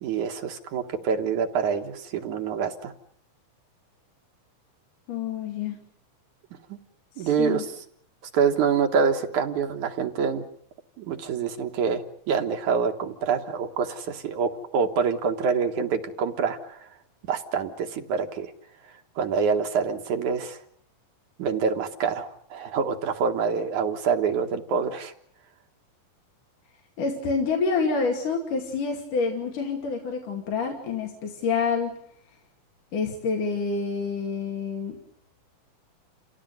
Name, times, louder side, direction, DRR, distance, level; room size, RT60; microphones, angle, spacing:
voice 1, 0.0-2.9 6.7-6.8 7.2-7.6 8.3-10.4 11.0-16.8 17.3-18.5 19.2-20.6 21.4-25.1, right 6 dB, 65° right, 5 dB, 2.7 m, -26 dB
voice 2, 5.1-5.8 7.2-7.6 27.0-32.0 32.9-35.0, left 5 dB, 65° left, 2 dB, 4.0 m, -27 dB
29.0 x 17.0 x 9.4 m, 0.67 s
omnidirectional pair, 4.0 m